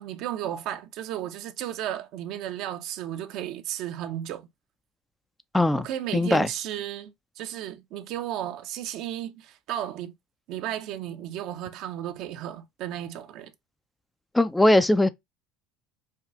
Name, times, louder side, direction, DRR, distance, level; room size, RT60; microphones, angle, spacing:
voice 1, 0.0-4.5 5.8-10.1 10.5-13.5, right 11 dB, 60° right, 0.6 m, -34 dB
voice 2, 5.5-5.9 6.1-6.5 14.3-15.1, left 1 dB, 10° left, 0.4 m, -20 dB
5.0 x 2.5 x 2.6 m
hypercardioid pair, 70°, 0 cm